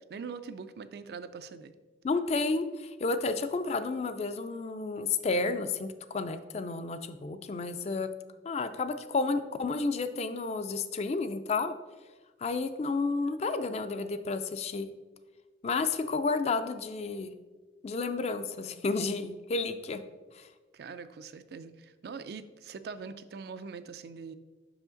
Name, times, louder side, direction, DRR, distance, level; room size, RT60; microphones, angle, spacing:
voice 1, 0.1-1.7 20.7-24.3, right 5 dB, 60° right, 12 dB, 0.3 m, -42 dB
voice 2, 2.0-8.1 8.4-11.7 12.4-14.9 15.6-17.3 17.8-20.0 20.4-20.5, left 3 dB, 35° left, 10 dB, 0.3 m, -31 dB
5.6 x 4.9 x 3.8 m, 1.3 s
head